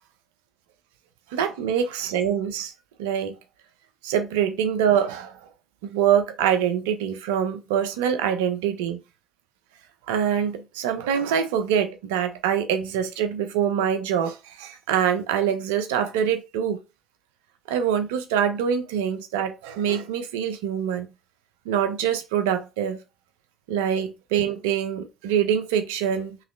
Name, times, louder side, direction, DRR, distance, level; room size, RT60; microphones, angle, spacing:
voice 1, 1.3-2.7 3.0-3.4 4.0-5.4 5.8-9.0 10.1-16.8 17.7-21.1 21.7-23.0 23.7-26.4, right 8 dB, 85° right, 0.6 m, -24 dB
4.8 x 3.1 x 3.1 m
hypercardioid pair, 50°, 0 cm